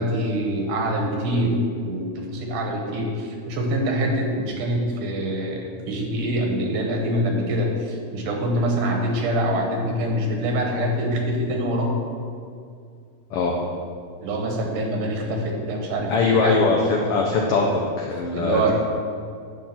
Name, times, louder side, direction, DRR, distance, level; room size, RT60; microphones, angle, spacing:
voice 1, 0.0-1.6 1.8-11.9 14.2-16.5 18.3-18.7, right 1 dB, 85° right, 1 dB, 2.8 m, -25 dB
voice 2, 16.1-18.7, left 4 dB, 85° left, 0 dB, 1.2 m, -21 dB
10.0 x 3.7 x 7.3 m, 2.3 s
omnidirectional pair, 3.5 m